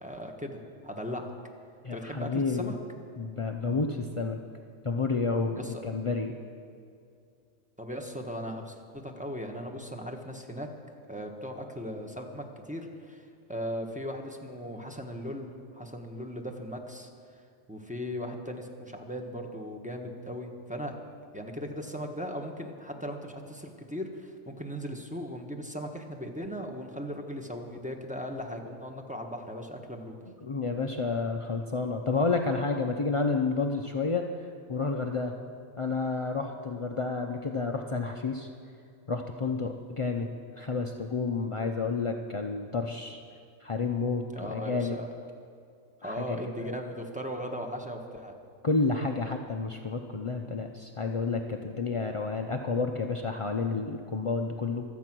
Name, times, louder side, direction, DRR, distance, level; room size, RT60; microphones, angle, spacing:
voice 1, 0.0-1.3 1.9-2.8 5.6-5.9 7.8-10.7 11.1-17.1 17.7-21.0 21.3-30.1 44.3-45.1 46.0-48.3, equal, 5° right, 1 dB, 1.2 m, -38 dB
voice 2, 1.8-2.7 3.2-4.4 4.8-6.3 30.4-35.3 35.8-38.5 39.1-40.3 40.5-43.2 43.6-45.0 46.0-46.4 48.6-54.8, left 4 dB, 50° left, 3 dB, 0.4 m, -30 dB
25.0 x 8.3 x 6.1 m, 2.4 s
omnidirectional pair, 1.5 m